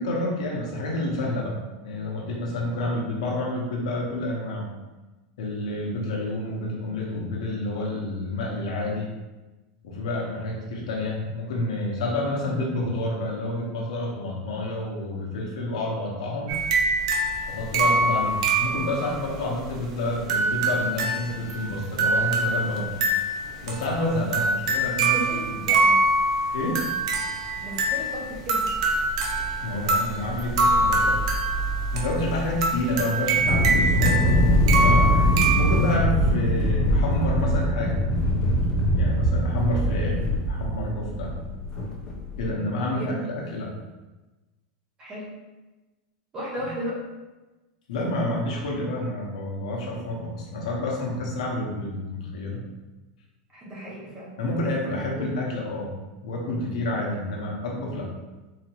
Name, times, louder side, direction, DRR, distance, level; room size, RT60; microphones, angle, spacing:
voice 1, 0.0-1.6 1.8-4.7 5.4-9.1 9.8-16.5 17.5-22.9 23.6-25.2 25.4-25.6 26.5-26.8 29.6-31.2 31.9-35.3 35.5-38.0 39.0-40.2 40.5-41.3 42.4-43.7 46.6-46.7 47.9-52.6 54.4-58.1, left 1 dB, 80° left, -2 dB, 1.1 m, -29 dB
sound 1, 16.5-36.0, right 2 dB, 65° right, 0.7 m, -24 dB
voice 2, 25.1-26.0 27.6-28.7 40.0-40.1 42.9-43.2 45.0-45.4 46.3-47.0 53.5-54.4 55.3-55.4, equal, 15° right, -4 dB, 0.7 m, -35 dB
sound 2, 33.4-42.5, equal, 20° left, 0.6 m, -22 dB
4.1 x 2.9 x 2.9 m, 1.1 s
supercardioid pair, 180°, 4 cm